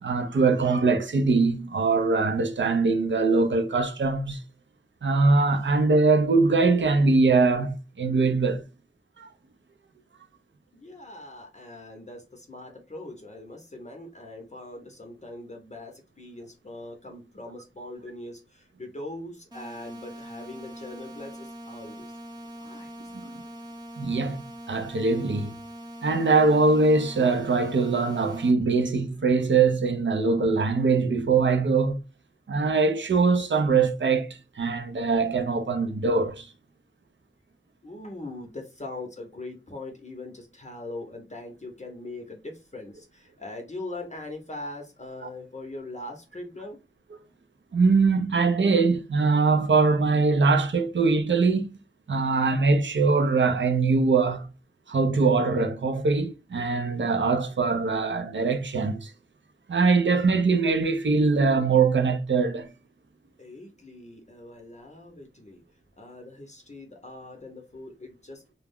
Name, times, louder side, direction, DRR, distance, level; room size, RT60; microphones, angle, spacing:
voice 1, 0.0-4.4 5.0-8.6 9.2-9.3 23.1-23.4 24.0-25.6 26.0-32.0 32.5-36.5 47.7-51.8 52.1-54.5 54.9-59.1 59.7-62.7, right 4 dB, 60° right, 0.5 m, -22 dB
voice 2, 10.7-22.1 22.5-22.9 37.8-46.8 63.4-65.6 66.0-68.4, left 2 dB, 35° left, 0.6 m, -41 dB
sound 1, 19.5-28.5, equal, 20° right, 0.7 m, -42 dB
2.3 x 2.0 x 3.5 m
wide cardioid pair, 65°, 21 cm